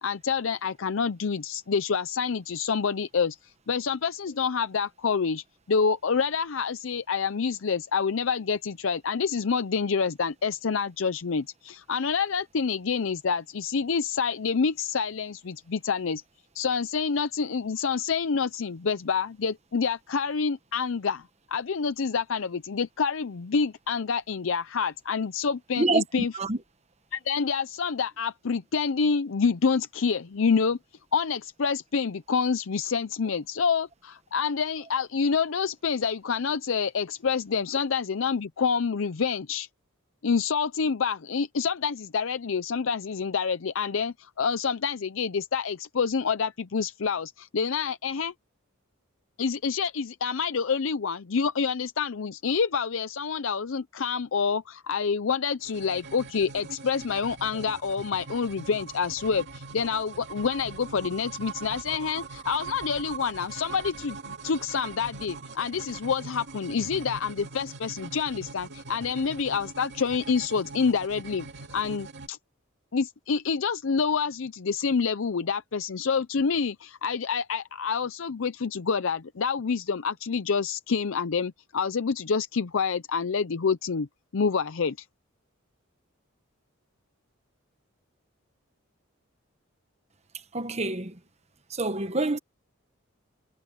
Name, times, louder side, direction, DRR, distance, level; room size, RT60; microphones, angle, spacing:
voice 1, 0.0-16.2 16.5-21.2 21.5-26.3 27.1-30.8 31.1-39.7 40.2-48.3 49.4-71.5 71.7-72.4 72.9-84.1 84.3-85.0, left 5 dB, 70° left, 0.6 m, -27 dB
sound 1, 55.6-72.3, right 4 dB, 60° right, 2.3 m, -42 dB
voice 2, 90.5-91.2 91.7-92.4, right 2 dB, 30° right, 1.2 m, -26 dB
head